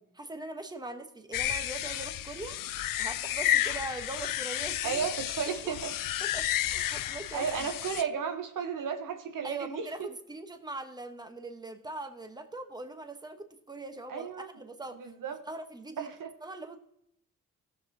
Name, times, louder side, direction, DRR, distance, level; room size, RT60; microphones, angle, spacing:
voice 1, 0.2-2.6 3.0-5.1 5.4-5.7 6.2-7.7 9.4-15.1 15.4-16.1 16.4-16.8, right 3 dB, 10° right, 7 dB, 1.1 m, -41 dB
sound 1, 1.3-8.0, left 13 dB, 80° left, 0.5 m, -32 dB
voice 2, 4.8-5.9 6.7-7.0 7.3-9.8 14.1-14.5 15.0-15.4 16.0-16.3, right 6 dB, 75° right, 6 dB, 1.1 m, -34 dB
16.0 x 7.1 x 2.8 m, 0.76 s
cardioid pair, 65°, 32 cm